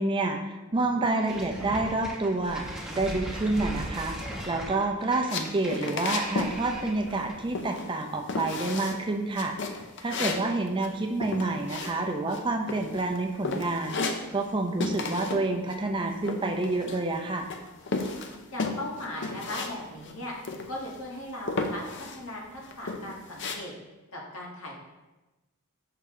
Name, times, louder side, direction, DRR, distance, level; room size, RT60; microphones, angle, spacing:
voice 1, 0.0-4.2 4.5-9.5 10.0-17.5, right 2 dB, 25° right, 3 dB, 0.5 m, -28 dB
sound 1, 1.3-7.5, right 1 dB, 5° right, 1.0 m, -38 dB
sound 2, 5.3-6.6 6.8-7.3 7.5-8.0 8.3-9.0 9.4-12.4 12.7-13.2 13.4-14.6 14.8-15.5 15.7-17.2 17.5-19.7 20.0-20.1 20.4-21.0 21.5-22.2 22.6-23.6, left 3 dB, 55° left, 0.6 m, -33 dB
voice 2, 18.5-20.3 20.7-23.7 24.1-24.8, left 1 dB, 80° left, -2 dB, 1.5 m, -38 dB
6.6 x 5.6 x 3.7 m, 1.1 s
head